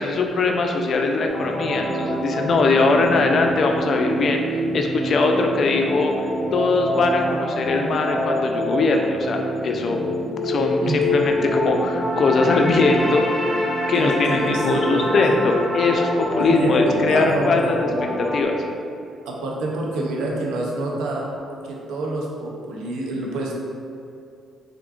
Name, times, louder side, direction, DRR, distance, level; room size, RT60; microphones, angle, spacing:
voice 1, 0.0-6.2 6.5-10.0 10.4-13.5 13.9-17.9 18.2-18.6, left 3 dB, 55° left, 3 dB, 0.4 m, -21 dB
sound 1, 1.3-18.4, left 1 dB, 20° left, 0.7 m, -26 dB
voice 2, 13.9-15.5 16.4-17.5 19.3-21.4 21.6-23.5, right 2 dB, 85° right, -1 dB, 0.6 m, -27 dB
3.6 x 3.5 x 2.4 m, 2.5 s
cardioid pair, 90°, 0 cm